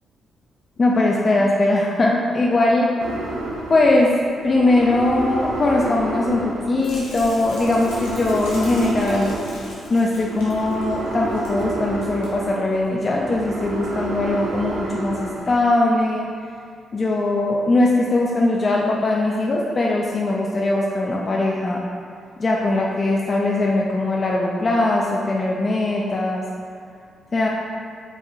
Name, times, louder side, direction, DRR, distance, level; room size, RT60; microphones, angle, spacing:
voice 1, 0.8-2.9 3.7-4.1 4.4-9.4 9.9-16.3 16.9-21.8 22.4-26.4 27.3-27.5, left 2 dB, 45° left, -2 dB, 0.4 m, -20 dB
sound 1, 3.0-15.6, right 2 dB, 75° right, 0.4 m, -31 dB
sound 2, 6.8-11.6 11.9-12.3 12.7-12.9, left 1 dB, 90° left, 0.8 m, -40 dB
4.8 x 2.5 x 2.6 m, 2.2 s
supercardioid pair, 55°, 0 cm